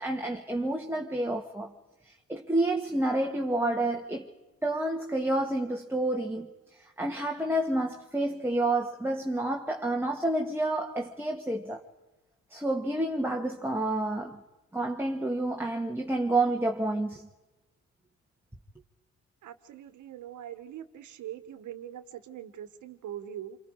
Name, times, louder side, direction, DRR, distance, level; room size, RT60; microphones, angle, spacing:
voice 1, 0.0-1.7 2.3-4.3 4.6-6.5 6.8-11.8 12.5-14.4 14.7-17.3, right 1 dB, 5° right, 1.8 m, -29 dB
voice 2, 19.4-23.6, right 11 dB, 75° right, 1.7 m, -42 dB
28.5 x 25.5 x 4.9 m
cardioid pair, 90°, 30 cm